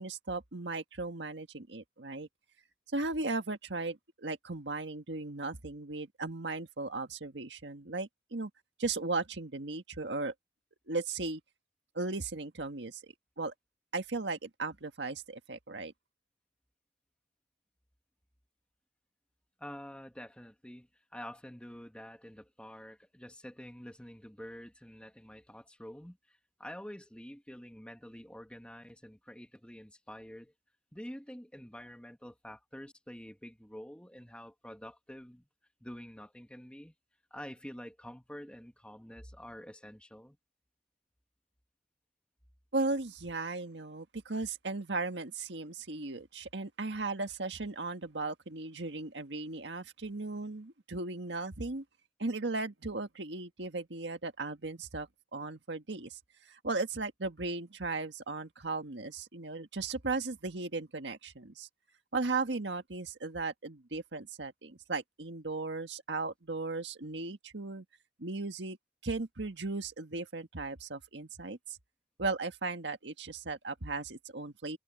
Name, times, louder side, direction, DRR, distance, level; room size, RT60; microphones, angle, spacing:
voice 1, 0.0-2.3 2.9-8.5 8.8-10.3 10.9-11.4 11.9-13.5 13.9-15.9 42.7-51.8 52.2-56.2 56.4-61.7 62.1-67.8 68.2-68.8 69.0-71.8 72.2-74.8, right 3 dB, 85° right, 1.7 m, -36 dB
voice 2, 19.6-30.5 30.9-35.5 35.8-36.9 37.3-40.4, equal, 5° left, 2.1 m, -48 dB
head